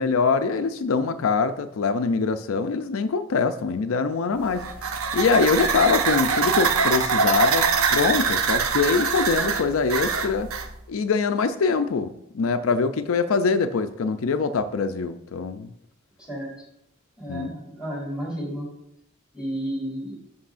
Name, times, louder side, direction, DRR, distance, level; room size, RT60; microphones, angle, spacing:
voice 1, 0.0-4.7 5.1-10.5 10.9-15.7 17.3-17.5, left 4 dB, 70° left, 9 dB, 0.4 m, -23 dB
sound 1, 4.4-10.7, right 5 dB, 80° right, 0.7 m, -23 dB
voice 2, 17.2-18.7 19.3-20.1, equal, 5° right, -4 dB, 3.0 m, -32 dB
11.5 x 6.2 x 2.5 m, 0.79 s
head